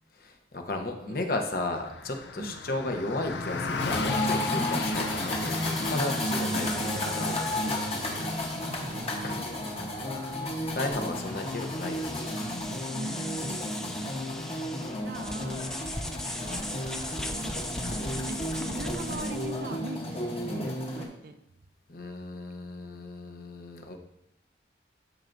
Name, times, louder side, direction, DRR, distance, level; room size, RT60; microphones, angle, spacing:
voice 1, 0.1-6.7 7.0-7.8 9.2-9.4 10.7-12.3 21.9-24.0, left 2 dB, 50° left, 4 dB, 0.8 m, -34 dB
Car passing by, 1.4-11.0, left 4 dB, 75° left, 0.5 m, -38 dB
sound 1, 3.8-21.1, left 1 dB, 35° left, 1.0 m, -32 dB
sound 2, 4.3-19.6, left 1 dB, 5° left, 0.3 m, -40 dB
voice 2, 6.5-7.1 8.7-9.5 12.9-13.7 15.0-15.7 17.2-21.4, right 2 dB, 55° right, 9 dB, 0.5 m, -41 dB
13.0 x 4.5 x 2.6 m, 0.84 s
head